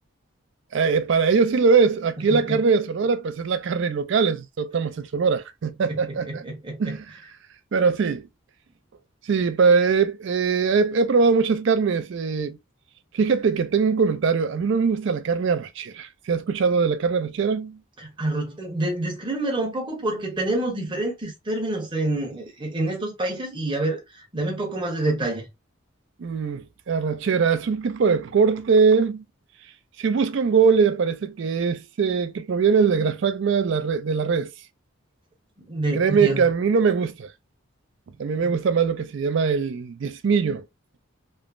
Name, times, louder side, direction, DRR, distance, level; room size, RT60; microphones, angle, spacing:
voice 1, 0.7-6.4 6.8-7.0 7.7-8.2 9.3-12.6 13.1-17.8 26.2-29.2 30.0-34.5 35.9-37.3 38.2-40.6, right 5 dB, 55° right, 0.3 m, -21 dB
voice 2, 2.3-2.6 5.9-7.0 18.0-25.5 35.6-36.5 38.4-38.5, right 2 dB, 20° right, 0.8 m, -27 dB
3.2 x 2.0 x 2.3 m
head